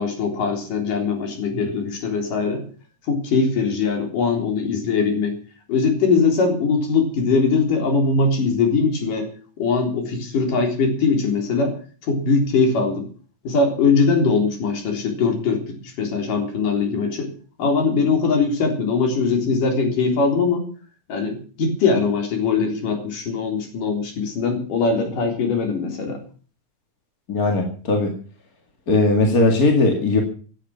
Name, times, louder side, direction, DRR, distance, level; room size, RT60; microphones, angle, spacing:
voice 1, 0.0-2.6 3.1-5.4 5.7-9.3 9.6-11.8 12.0-13.1 13.5-17.3 17.6-20.6 21.1-26.2, left 4 dB, 70° left, 3 dB, 5.3 m, -21 dB
voice 2, 27.3-28.1 28.9-30.2, left 3 dB, 30° left, 2 dB, 2.1 m, -18 dB
16.5 x 10.0 x 7.2 m, 0.42 s
omnidirectional pair, 3.9 m